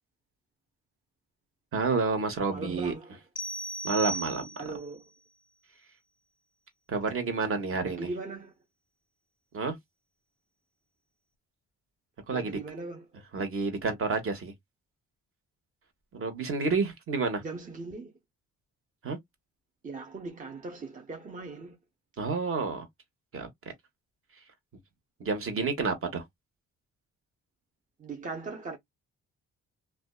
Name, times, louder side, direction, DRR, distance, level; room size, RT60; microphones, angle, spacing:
voice 1, 1.7-2.9 3.8-4.5 6.9-8.1 9.5-9.8 12.3-12.6 13.3-14.5 16.1-17.4 19.0-19.2 22.2-22.9 23.3-23.5 25.2-26.2, right 4 dB, 45° right, 1.0 m, -29 dB
voice 2, 2.5-3.2 4.6-5.0 7.8-8.5 12.3-13.1 17.4-18.1 19.8-21.8 28.0-28.8, right 3 dB, 25° right, 0.6 m, -39 dB
sound 1, 3.4-4.9, right 1 dB, 25° left, 0.5 m, -36 dB
2.5 x 2.2 x 2.2 m
cardioid pair, 90°, 30 cm